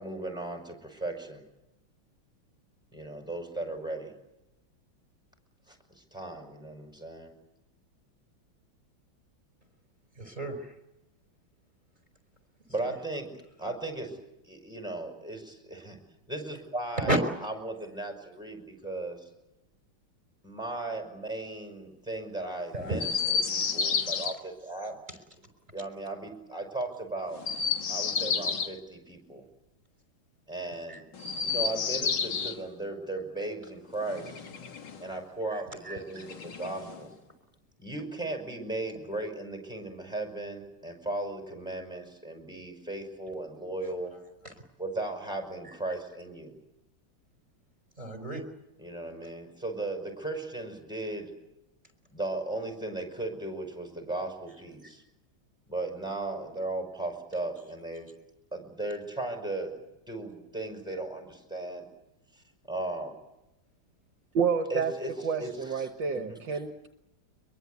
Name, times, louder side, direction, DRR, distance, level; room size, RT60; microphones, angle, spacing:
voice 1, 0.0-1.4 2.9-4.1 5.7-5.8 6.1-7.3 12.7-13.3 13.6-14.2 14.5-16.0 16.3-19.2 20.4-24.9 25.7-27.4 27.9-29.4 30.5-31.0 31.4-34.4 35.0-37.1 37.8-44.1 44.8-46.5 48.8-51.3 52.1-55.0 55.7-58.1 58.5-59.7 60.1-61.9 62.7-63.1 64.7-65.1 65.4-65.9 66.1-66.4, right 2 dB, ahead, 3 dB, 5.5 m, -36 dB
voice 2, 10.2-10.7 17.0-17.2 22.7-23.0 30.9-31.0 35.5-36.3 44.4-44.5 48.0-48.4, right 1 dB, 20° right, 7 dB, 4.7 m, -32 dB
Chirp tweet, 23.0-24.3 27.3-28.7 31.1-32.6 34.0-35.1 36.2-37.1, left 6 dB, 60° left, 2.2 m, -30 dB
voice 3, 64.3-64.9 65.2-66.9, right 6 dB, 65° right, 6 dB, 1.8 m, -29 dB
24.0 x 22.5 x 8.2 m, 0.90 s
omnidirectional pair, 2.2 m